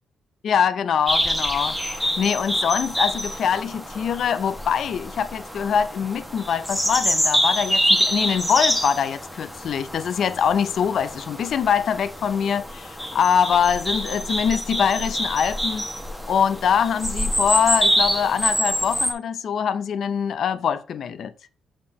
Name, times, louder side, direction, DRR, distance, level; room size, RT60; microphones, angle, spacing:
voice 1, 0.4-15.9 16.3-21.3, left 7 dB, 60° left, 0.6 m, -23 dB
sound 1, 1.1-19.1, equal, ahead, 1.2 m, -26 dB
7.0 x 4.4 x 4.3 m
cardioid pair, 90°, 0 cm